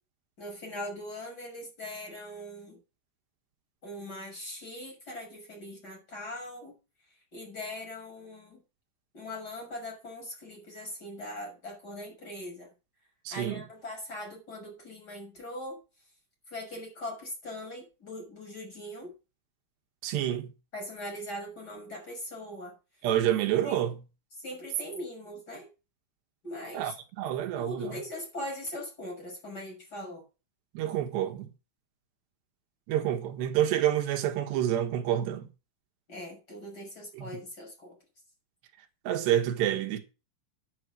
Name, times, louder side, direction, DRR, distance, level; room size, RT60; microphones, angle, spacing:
voice 1, 0.4-2.8 3.8-6.7 7.3-8.6 9.1-12.7 13.3-15.8 16.5-19.1 20.7-22.7 23.6-23.8 24.4-25.7 26.4-26.9 27.6-30.2 36.1-37.9, left 1 dB, 20° left, 6.7 m, -40 dB
voice 2, 13.2-13.6 20.0-20.5 23.0-24.0 26.7-28.0 30.7-31.5 32.9-35.5 37.1-37.3 39.0-40.0, right 11 dB, 65° right, 3.4 m, -28 dB
9.9 x 8.7 x 6.2 m
omnidirectional pair, 5.8 m